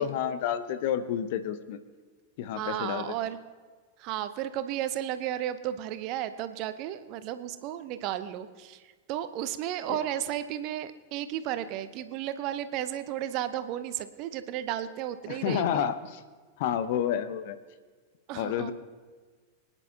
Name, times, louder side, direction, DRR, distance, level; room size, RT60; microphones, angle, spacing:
voice 1, 0.0-1.8 2.4-3.1 9.9-10.0 15.3-16.2 16.6-17.6 18.3-18.7, left 9 dB, 50° left, 11 dB, 0.8 m, -30 dB
voice 2, 2.5-3.4 4.0-15.9 18.3-18.7, right 11 dB, 40° right, 11 dB, 0.8 m, -33 dB
24.0 x 9.9 x 2.8 m, 1.4 s
figure-of-eight pair, 90°, 0 cm